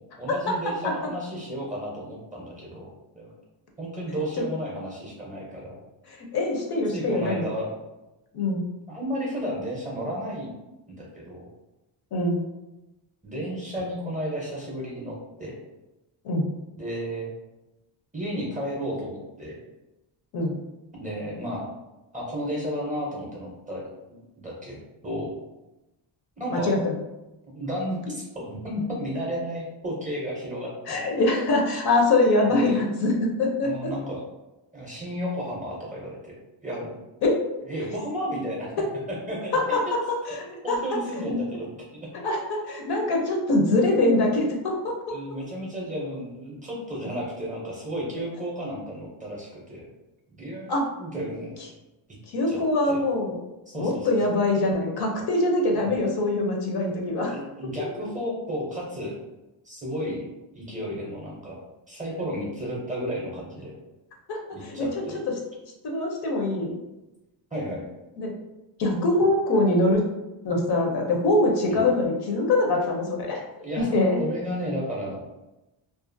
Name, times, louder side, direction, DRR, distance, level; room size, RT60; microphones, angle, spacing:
voice 1, 0.0-3.3 3.8-5.8 6.9-7.7 8.9-10.6 10.9-11.4 13.2-15.6 16.8-17.3 18.1-19.6 20.9-21.7 22.1-25.3 26.4-26.8 27.5-30.7 31.0-31.1 32.5-32.8 33.6-34.2 34.7-36.3 36.6-36.9 37.7-38.7 39.1-39.8 40.6-42.1 45.1-49.9 50.3-51.6 52.5-52.6 52.9-53.0 53.7-54.1 55.7-55.9 57.3-59.2 59.6-60.3 60.5-61.6 61.9-63.8 64.5-65.2 67.5-67.9 71.7-71.8 73.6-73.9 74.2-75.2, equal, 15° right, -3 dB, 0.5 m, -33 dB
voice 2, 6.1-7.5 8.3-8.6 12.1-12.4 16.2-16.5 20.3-20.6 26.5-27.0 30.9-33.9 37.2-37.4 39.5-40.8 41.3-41.4 42.2-45.1 50.7-50.8 52.3-53.4 53.7-57.4 64.3-64.9 65.8-66.8 68.2-68.3 68.8-70.0 70.4-73.4 73.8-74.2, left 2 dB, 55° left, 0 dB, 0.6 m, -23 dB
2.4 x 2.4 x 2.5 m, 1.0 s
cardioid pair, 140°, 48 cm